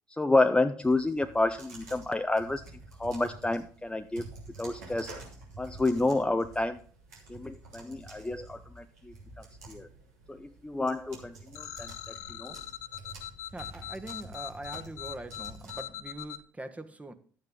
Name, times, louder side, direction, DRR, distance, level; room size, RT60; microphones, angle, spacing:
voice 1, 0.2-2.6 3.0-4.3 4.6-5.2 5.6-6.8 7.3-9.9 10.3-12.5, left 2 dB, 10° left, 7 dB, 0.8 m, -29 dB
sound 1, 0.8-15.8, right 2 dB, 80° right, 3.0 m, -49 dB
sound 2, 11.5-16.4, left 12 dB, 75° left, 0.8 m, -41 dB
voice 2, 13.5-17.1, right 1 dB, 15° right, 7 dB, 1.4 m, -42 dB
12.0 x 8.9 x 3.8 m, 0.44 s
figure-of-eight pair, 50°, 9 cm